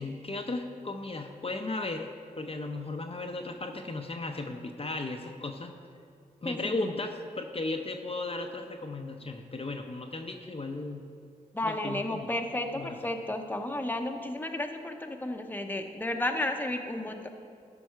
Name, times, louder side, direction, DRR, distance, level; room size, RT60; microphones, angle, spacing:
voice 1, 0.0-2.1 2.4-5.7 6.4-11.1 11.6-12.3 12.7-13.0, left 2 dB, 40° left, 3 dB, 0.7 m, -35 dB
voice 2, 11.5-17.3, left 1 dB, 10° left, 4 dB, 0.8 m, -32 dB
13.0 x 5.4 x 4.5 m, 2.4 s
cardioid pair, 50°, 16 cm